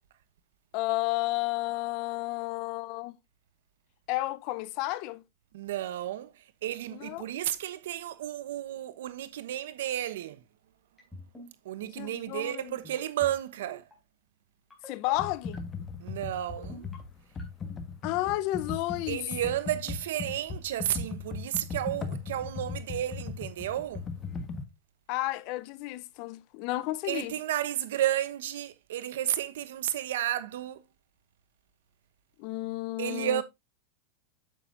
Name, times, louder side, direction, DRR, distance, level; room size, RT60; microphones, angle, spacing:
voice 1, 0.7-3.1 4.1-5.2 6.9-7.3 11.9-12.8 14.9-15.6 18.0-19.3 25.1-27.3 32.4-33.4, left 18 dB, 50° left, 0.7 m, -32 dB
voice 2, 5.5-6.3 6.6-10.4 11.6-13.8 16.0-16.9 19.1-24.0 27.1-30.8 33.0-33.4, right 12 dB, 80° right, 1.0 m, -32 dB
sound 1, 11.0-11.5 11.8-12.1 12.8-13.3 13.7-13.9 14.7-15.1 15.5-15.9 16.6-17.0 17.4-17.7, left 1 dB, 10° left, 4.0 m, -47 dB
Computer keyboard, 15.1-24.6, left 4 dB, 25° left, 1.4 m, -38 dB
8.9 x 7.3 x 2.6 m
supercardioid pair, 135°, 0 cm